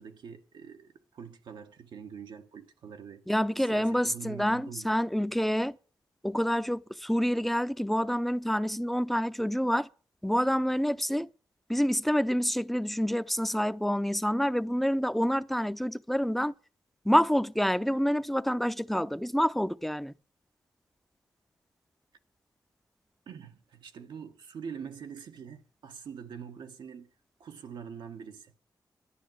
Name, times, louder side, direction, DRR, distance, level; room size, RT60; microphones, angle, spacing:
voice 1, 0.0-3.2 3.6-4.9 23.3-27.1 27.4-28.5, right 7 dB, 90° right, 1.4 m, -44 dB
voice 2, 3.3-5.8 6.2-9.9 10.2-11.3 11.7-16.5 17.0-20.1, equal, ahead, 0.6 m, -27 dB
12.0 x 10.5 x 7.9 m
cardioid pair, 65°, 8 cm